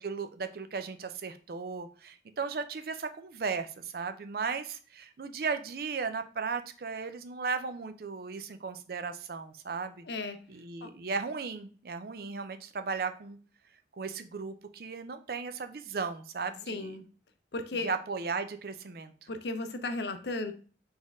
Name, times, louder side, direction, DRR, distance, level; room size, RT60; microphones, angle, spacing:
voice 1, 0.0-10.1 10.5-13.4 14.0-17.0 17.8-19.1, right 5 dB, 55° right, 9 dB, 0.5 m, -36 dB
voice 2, 10.0-10.4 10.8-10.9 16.7-17.0 17.5-17.9 19.3-20.5, left 2 dB, 75° left, 8 dB, 0.6 m, -35 dB
4.3 x 3.4 x 3.5 m, 0.39 s
head